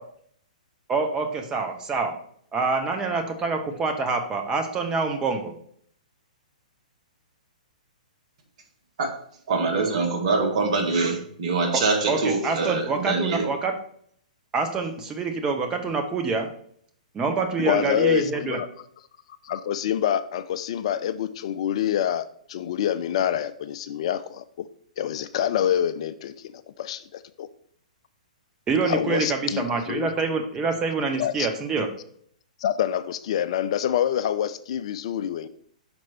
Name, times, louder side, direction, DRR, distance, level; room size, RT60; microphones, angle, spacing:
voice 1, 0.9-2.1 2.5-5.5 11.7-11.8 12.1-13.7 14.5-16.5 17.1-18.6 28.7-31.9, right 4 dB, 15° right, 5 dB, 0.8 m, -26 dB
voice 2, 9.5-13.5, right 3 dB, 55° right, 2 dB, 1.3 m, -24 dB
voice 3, 17.6-18.7 19.4-24.7 25.0-27.5 28.9-30.1 31.2-31.5 32.6-35.5, left 10 dB, 50° left, 13 dB, 0.3 m, -26 dB
5.9 x 4.5 x 4.3 m, 0.64 s
figure-of-eight pair, 115°, 4 cm